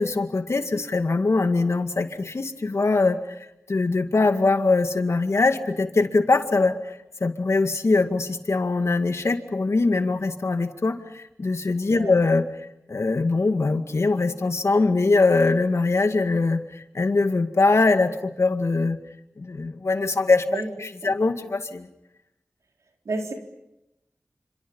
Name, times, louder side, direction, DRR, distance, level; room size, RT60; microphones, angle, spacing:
voice 1, 0.0-3.2 3.7-12.4 12.9-19.0 19.4-21.9, left 3 dB, 65° left, 7 dB, 2.1 m, -22 dB
voice 2, 11.9-12.1 20.5-20.7 21.0-21.1 23.0-23.3, right 2 dB, 85° right, 1 dB, 4.1 m, -30 dB
29.5 x 27.0 x 5.6 m, 0.88 s
cardioid pair, 45°, 5 cm